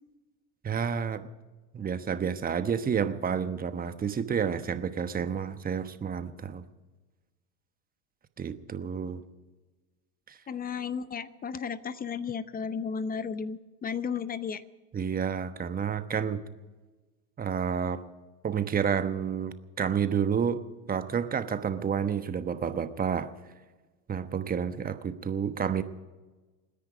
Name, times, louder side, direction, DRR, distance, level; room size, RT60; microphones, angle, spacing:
voice 1, 0.6-1.3 1.7-6.6 8.4-9.2 10.3-10.4 14.9-16.4 17.4-18.0 18.4-20.6 20.9-23.3 24.1-25.8, right 7 dB, 20° right, 10 dB, 1.1 m, -30 dB
voice 2, 10.5-14.6, left 6 dB, 20° left, 15 dB, 0.8 m, -34 dB
27.5 x 10.5 x 5.1 m, 1.2 s
hypercardioid pair, 105°, 47 cm